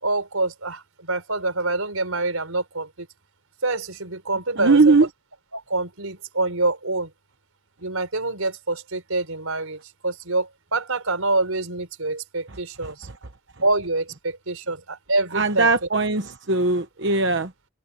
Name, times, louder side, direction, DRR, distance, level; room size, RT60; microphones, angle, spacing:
voice 1, 0.0-3.1 3.6-4.9 5.5-7.1 7.8-13.1 13.6-15.7, right 2 dB, 85° right, 4.9 m, -26 dB
voice 2, 4.6-5.1 12.5-12.6 12.8-12.9 15.3-17.5, right 3 dB, 55° right, 1.0 m, -19 dB
open air
head